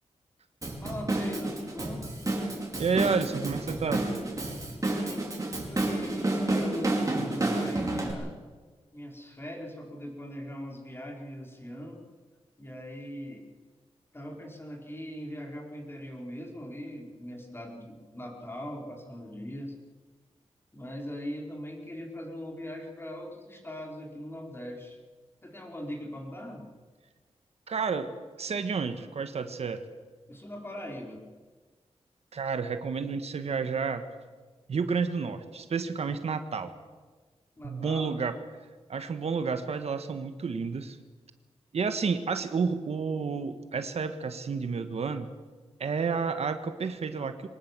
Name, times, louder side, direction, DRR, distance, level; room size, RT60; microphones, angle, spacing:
Drum kit / Drum, 0.6-8.1, right 2 dB, 30° right, 5.0 m, -30 dB
voice 1, 0.8-2.1 4.7-5.3 5.6-7.1 7.5-8.4 8.9-12.0 12.6-13.5 14.1-19.8 20.7-25.0 25.4-26.7 30.3-31.2 37.6-38.0, equal, 20° left, 1 dB, 4.7 m, -40 dB
voice 2, 2.8-4.0 27.7-28.1 28.4-29.8 32.3-34.1 34.7-36.7 37.6-38.4 38.9-41.0 41.7-45.3 45.8-47.5, right 5 dB, 70° right, 9 dB, 1.5 m, -30 dB
24.0 x 19.0 x 7.6 m, 1.4 s
wide cardioid pair, 110°, 11 cm